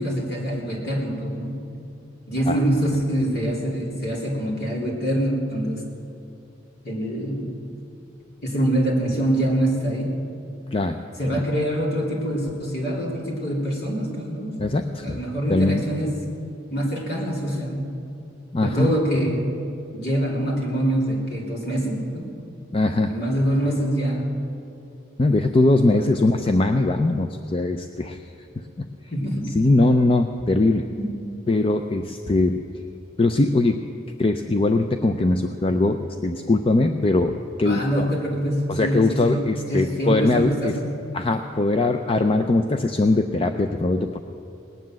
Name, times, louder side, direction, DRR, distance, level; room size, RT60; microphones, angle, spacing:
voice 1, 0.0-1.6 2.3-5.8 6.8-7.5 8.4-10.2 11.2-14.6 15.0-16.1 16.7-17.9 18.6-19.5 19.9-22.3 23.1-24.3 25.9-26.0 29.1-29.4 31.0-31.1 37.6-40.9, right 1 dB, 55° left, -2 dB, 3.4 m, -25 dB
voice 2, 14.6-15.2 15.5-15.8 18.5-18.9 22.7-23.1 25.2-28.2 28.6-28.9 29.5-30.9 31.5-32.6 33.2-33.8 34.2-38.1 38.7-40.8 41.1-44.2, left 2 dB, 30° left, 7 dB, 0.5 m, -21 dB
19.0 x 9.6 x 7.6 m, 2.7 s
head